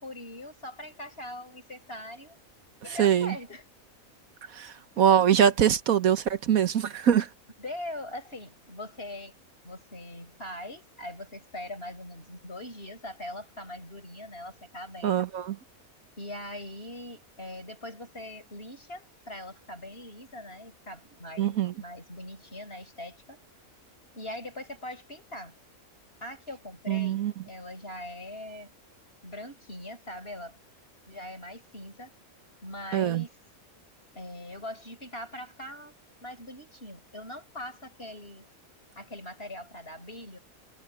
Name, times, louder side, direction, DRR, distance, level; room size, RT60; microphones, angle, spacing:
voice 1, 0.0-2.4 2.8-3.6 7.6-9.4 9.6-15.2 16.2-23.4 24.1-25.6 26.2-28.7 29.2-30.6 31.1-32.1 32.6-33.3 34.1-35.9 36.2-38.5 39.0-40.4, left 1 dB, 45° left, 7.3 m, -41 dB
voice 2, 2.9-3.3 4.5-7.3 15.0-15.6 21.4-21.7 26.9-27.3 32.9-33.2, right 9 dB, 80° right, 1.5 m, -23 dB
omnidirectional pair, 1.5 m